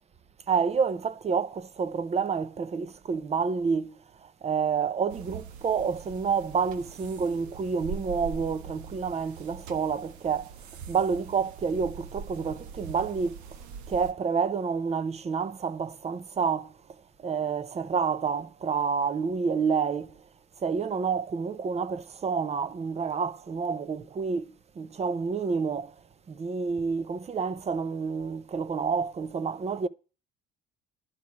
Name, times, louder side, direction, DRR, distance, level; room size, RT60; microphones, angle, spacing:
voice 1, 0.5-10.5 10.9-13.4 13.9-16.7 17.2-20.2 20.6-25.9 26.3-29.9, right 5 dB, 20° right, 0.6 m, -29 dB
sound 1, 5.1-14.1, right 6 dB, 65° right, 1.2 m, -42 dB
11.5 x 4.7 x 8.4 m
cardioid pair, 150°, 32 cm